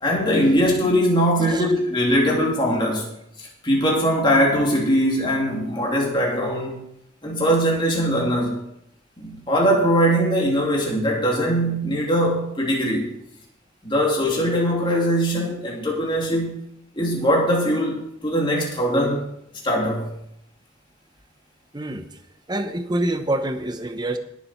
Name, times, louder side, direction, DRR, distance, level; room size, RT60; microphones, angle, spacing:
voice 1, 0.0-3.0 3.4-6.8 7.2-8.6 9.2-13.1 13.8-16.6 16.9-19.2 19.6-20.1, equal, 25° left, -2 dB, 3.0 m, -21 dB
voice 2, 1.4-1.7 21.7-22.2 22.5-24.2, right 1 dB, 20° right, 8 dB, 0.9 m, -26 dB
18.0 x 7.4 x 4.6 m, 0.77 s
head